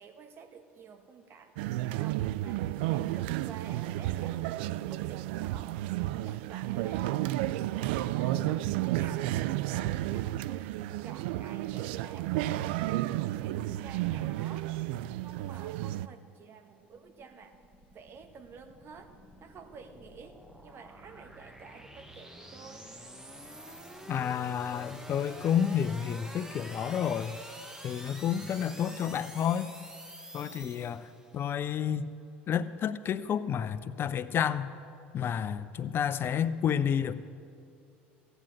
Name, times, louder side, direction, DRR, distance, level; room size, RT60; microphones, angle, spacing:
voice 1, 0.0-1.5 2.0-4.6 4.9-9.3 9.6-10.8 11.0-14.7 15.2-17.5 17.9-19.1 19.4-22.9, right 5 dB, 45° right, 6 dB, 1.4 m, -51 dB
sound 1, 1.6-16.1, right 15 dB, 70° right, 0.3 m, -32 dB
sound 2, 16.8-31.4, right 1 dB, 10° right, 1.3 m, -48 dB
voice 2, 24.1-27.4 27.8-29.7 30.3-32.0 32.5-34.7 35.1-37.2, left 8 dB, 40° left, 13 dB, 0.6 m, -30 dB
14.5 x 9.1 x 7.6 m, 2.4 s
hypercardioid pair, 75°, 6 cm